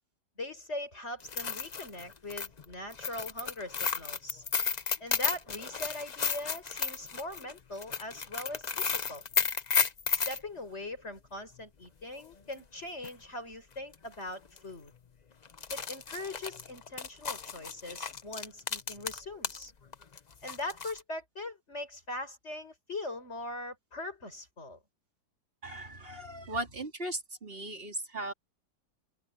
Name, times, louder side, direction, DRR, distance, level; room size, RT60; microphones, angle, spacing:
voice 1, 0.4-4.4 5.0-9.2 10.1-14.9 15.7-19.7 20.4-24.8, left 2 dB, 35° left, 6.0 m, -41 dB
sound 1, 1.2-10.4 12.5-12.6 13.0-13.1 13.9-14.1 14.4-14.6 15.4-19.6 19.9-21.0, left 6 dB, 90° left, 0.3 m, -33 dB
voice 2, 25.6-28.3, right 1 dB, 30° right, 3.8 m, -37 dB
omnidirectional pair, 2.0 m